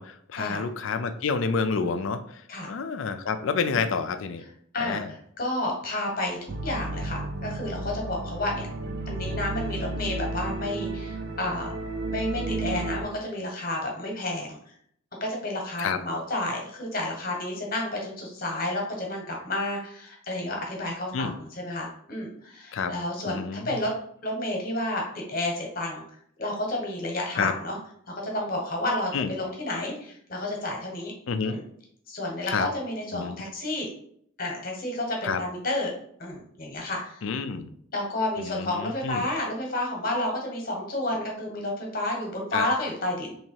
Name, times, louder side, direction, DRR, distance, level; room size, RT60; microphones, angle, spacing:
voice 1, 0.0-4.4 4.8-5.1 15.8-16.0 21.1-21.4 22.7-22.9 23.3-23.8 27.4-27.5 29.1-29.3 31.3-31.6 32.5-32.7 33.1-33.4 35.2-35.4 37.2-37.7 38.4-39.3 42.5-42.7, left 5 dB, 65° left, 10 dB, 0.4 m, -29 dB
voice 2, 4.7-8.7 9.1-11.7 12.1-14.6 15.2-23.9 24.2-26.0 26.4-27.8 28.1-31.1 31.4-31.6 32.1-33.9 34.4-35.9 36.2-37.2 37.9-43.4, left 1 dB, 40° left, 0 dB, 1.1 m, -31 dB
sound 1, 6.5-13.0, right 2 dB, 50° right, 0.5 m, -33 dB
3.2 x 2.8 x 4.5 m, 0.65 s
head